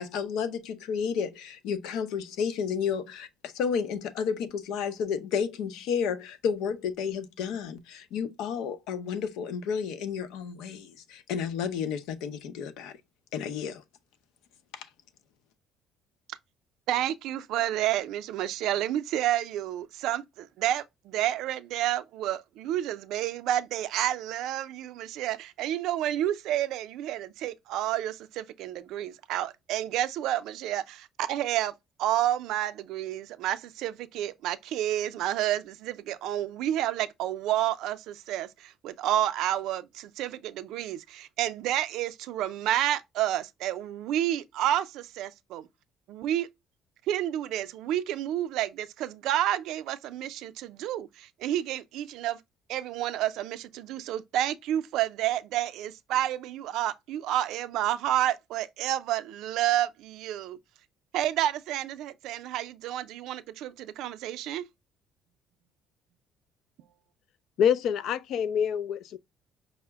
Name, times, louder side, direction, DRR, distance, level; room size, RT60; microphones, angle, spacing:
voice 1, 0.0-12.9 13.3-13.8, left 7 dB, 85° left, 0.7 m, -31 dB
voice 2, 16.9-31.7 32.0-45.7 46.1-46.5 47.1-52.4 52.7-60.6 61.1-64.7, right 12 dB, 70° right, 0.4 m, -30 dB
voice 3, 67.6-69.2, left 8 dB, 60° left, 0.3 m, -26 dB
5.6 x 2.0 x 3.4 m
cardioid pair, 145°, 0 cm